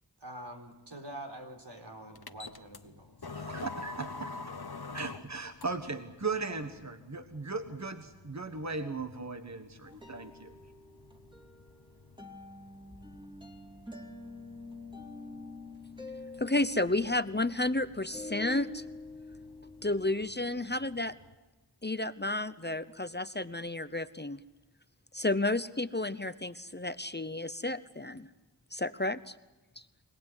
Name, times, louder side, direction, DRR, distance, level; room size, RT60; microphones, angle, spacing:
voice 1, 0.2-3.3, right 1 dB, 75° right, 3 dB, 4.2 m, -46 dB
sound 1, 2.1-21.3, left 3 dB, 60° left, 1.2 m, -49 dB
voice 2, 3.3-4.4 4.9-10.5, right 4 dB, 40° right, 8 dB, 1.5 m, -37 dB
sound 2, 9.9-20.3, left 2 dB, 10° right, 2.7 m, -47 dB
voice 3, 16.4-18.8 19.8-21.2 21.8-24.4 25.1-28.3 28.7-29.3 29.8-29.9, left 2 dB, 25° left, 13 dB, 0.9 m, -31 dB
25.5 x 18.5 x 9.7 m, 1.1 s
wide cardioid pair, 40°, 42 cm